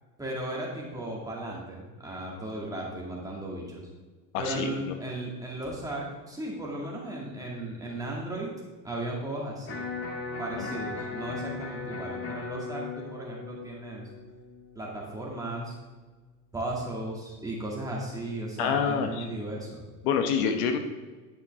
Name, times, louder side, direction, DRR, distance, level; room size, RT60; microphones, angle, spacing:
voice 1, 0.2-3.9 4.4-8.5 8.8-9.9 10.4-14.1 14.8-15.7 16.5-19.9, right 1 dB, 5° right, -3 dB, 2.1 m, -36 dB
voice 2, 4.3-4.9 10.5-10.7 18.6-19.3 20.0-20.8, left 6 dB, 70° left, 6 dB, 1.1 m, -27 dB
Electric guitar, 9.7-15.7, left 4 dB, 30° left, 1.6 m, -38 dB
10.5 x 5.6 x 3.6 m, 1.3 s
supercardioid pair, 130°, 46 cm